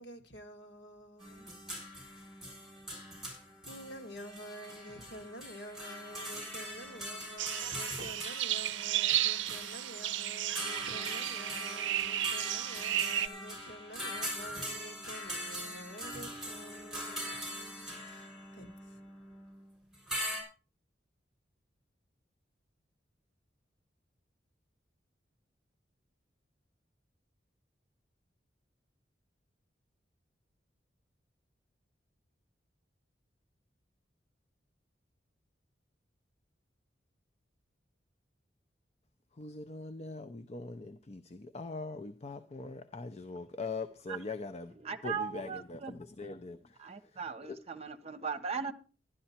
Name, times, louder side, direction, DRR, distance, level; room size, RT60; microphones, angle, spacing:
voice 1, 0.0-1.6 3.7-17.4 18.0-19.0, equal, 70° left, 2.0 m, -49 dB
sound 1, 1.2-20.4, equal, 5° right, 6.3 m, -42 dB
sound 2, 7.4-13.3, right 12 dB, 90° right, 0.5 m, -33 dB
voice 2, 39.3-44.7 45.0-47.6, left 3 dB, 35° left, 0.6 m, -42 dB
voice 3, 44.8-45.9 46.8-48.7, right 6 dB, 35° right, 1.0 m, -38 dB
12.0 x 11.0 x 4.4 m
head